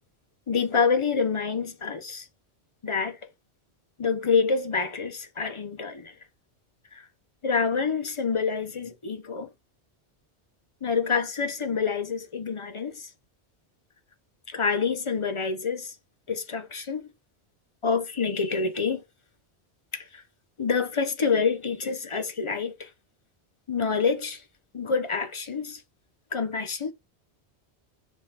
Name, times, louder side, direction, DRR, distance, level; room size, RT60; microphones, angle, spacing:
voice 1, 0.5-2.3 2.8-3.2 4.0-6.1 6.9-7.1 7.4-9.5 10.8-13.1 14.5-15.9 16.3-17.1 17.8-19.0 19.9-20.2 20.6-22.9 23.7-24.4 24.7-25.8 26.3-26.9, left 5 dB, 35° left, 0.6 m, -27 dB
5.2 x 3.5 x 2.8 m
omnidirectional pair, 1.1 m